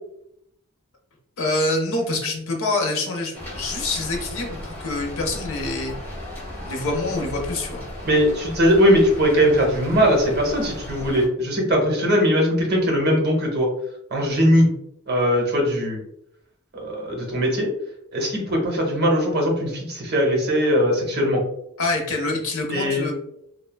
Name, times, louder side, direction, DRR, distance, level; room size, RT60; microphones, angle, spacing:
voice 1, 1.4-6.0 6.6-7.8 21.8-23.1, left 2 dB, 80° left, 2 dB, 0.6 m, -26 dB
Rain, 3.3-11.3, left 1 dB, 10° left, 0.8 m, -35 dB
voice 2, 8.0-13.7 14.1-14.7 15.1-16.0 16.7-17.7 18.1-21.4 22.7-23.0, equal, 45° right, -1 dB, 0.8 m, -20 dB
3.2 x 2.1 x 2.2 m, 0.77 s
head